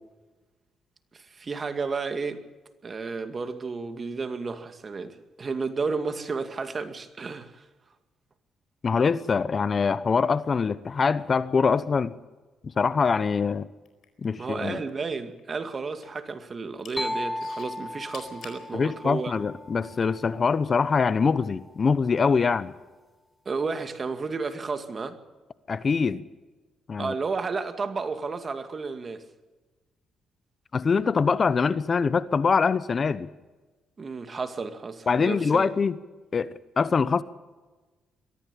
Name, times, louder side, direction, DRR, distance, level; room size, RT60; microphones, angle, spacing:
voice 1, 1.1-2.4 2.8-7.6 14.4-19.3 23.5-25.2 27.0-29.2 34.0-35.7, right 4 dB, 35° right, 2.2 m, -32 dB
voice 2, 8.8-12.1 12.8-13.7 14.2-14.8 18.7-22.7 25.7-26.2 26.9-27.1 30.7-33.3 35.1-36.0 36.3-37.2, left 5 dB, 40° left, 0.9 m, -24 dB
sound 1, 13.8-14.9 15.2-16.2 16.6-17.0 17.4-18.6 19.3-19.4, left 7 dB, 65° left, 4.5 m, -47 dB
sound 2, 17.0-20.7, left 1 dB, 10° left, 1.0 m, -36 dB
22.5 x 14.5 x 8.4 m
cardioid pair, 90°, 0 cm